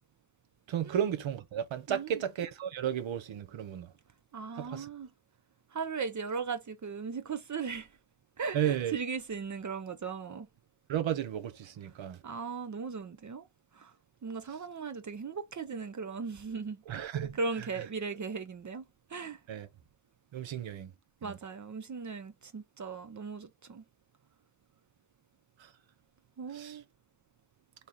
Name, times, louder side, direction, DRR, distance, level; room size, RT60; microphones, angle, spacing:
voice 1, 0.7-3.9 4.6-4.9 8.5-9.0 10.9-12.2 16.9-17.4 19.5-19.7 20.3-20.9 21.2-21.3 26.5-26.8, right 9 dB, 65° right, 0.8 m, -33 dB
voice 2, 1.9-2.2 4.3-5.1 5.7-7.9 8.4-10.5 12.2-13.4 13.7-13.9 14.2-16.8 17.3-18.8 19.1-19.4 21.2-23.8 26.4-26.8, right 5 dB, 35° right, 0.6 m, -38 dB
3.2 x 2.5 x 4.1 m
supercardioid pair, 45°, 50 cm